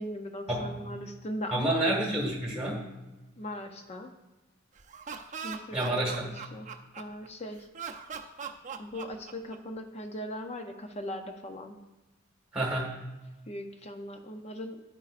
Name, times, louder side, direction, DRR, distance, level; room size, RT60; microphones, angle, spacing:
voice 1, 0.0-1.9 3.4-4.1 5.4-6.7 7.0-7.7 8.8-11.8 13.5-14.8, equal, 30° left, 5 dB, 0.5 m, -39 dB
voice 2, 1.5-2.8 5.7-6.3 12.5-12.9, right 1 dB, 5° right, -2 dB, 1.7 m, -29 dB
Laughter, 4.8-7.3 7.7-9.8, right 6 dB, 40° right, 0.5 m, -40 dB
9.4 x 9.0 x 2.5 m, 1.1 s
head